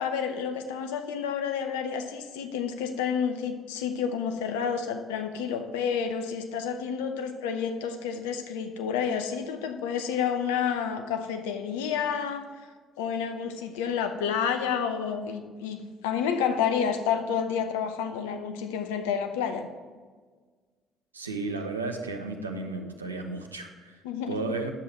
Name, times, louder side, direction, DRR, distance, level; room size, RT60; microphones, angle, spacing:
voice 1, 0.0-12.5 13.0-19.7 24.0-24.6, left 7 dB, 70° left, 7 dB, 0.8 m, -30 dB
voice 2, 21.1-24.0 24.3-24.7, right 3 dB, 85° right, 4 dB, 0.8 m, -33 dB
9.9 x 7.5 x 4.4 m, 1.5 s
figure-of-eight pair, 50°, 0 cm